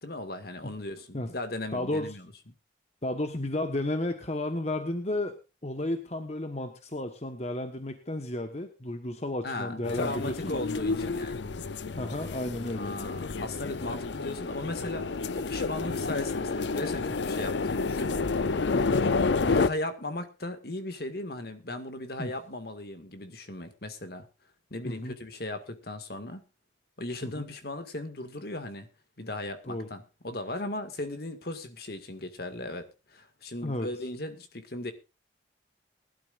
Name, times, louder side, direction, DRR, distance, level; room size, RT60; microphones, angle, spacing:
voice 1, 0.0-2.3 9.4-11.5 12.7-18.1 19.4-24.3 24.7-26.4 27.0-28.9 29.2-34.9, left 2 dB, 55° left, 9 dB, 2.0 m, -37 dB
voice 2, 1.7-2.2 3.0-10.6 12.0-12.9 18.7-19.1 22.2-22.3 24.8-25.2 27.2-27.5 29.7-29.9 33.6-33.9, left 1 dB, 35° left, 7 dB, 1.2 m, -33 dB
sound 1, 9.8-19.7, left 4 dB, 70° left, 0.6 m, -30 dB
20.5 x 12.5 x 2.5 m, 0.28 s
head